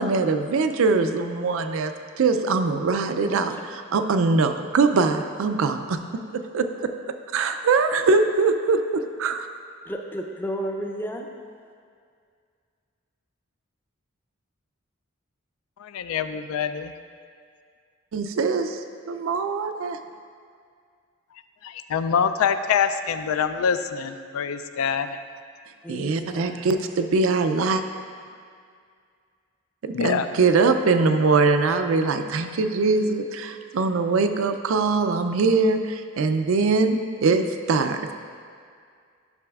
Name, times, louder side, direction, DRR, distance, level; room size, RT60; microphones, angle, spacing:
voice 1, 0.0-3.5 3.9-6.0 6.5-6.6 7.3-8.8 9.2-9.4 18.1-18.8 19.1-20.0 25.9-27.8 29.8-38.1, right 4 dB, 75° right, 8 dB, 0.4 m, -22 dB
voice 2, 3.2-3.6 9.9-11.3 25.8-26.9, equal, 10° left, 2 dB, 0.4 m, -33 dB
voice 3, 15.8-16.9 21.6-25.2 29.9-30.3, left 7 dB, 85° left, 10 dB, 0.3 m, -25 dB
10.5 x 6.0 x 2.3 m, 2.2 s
head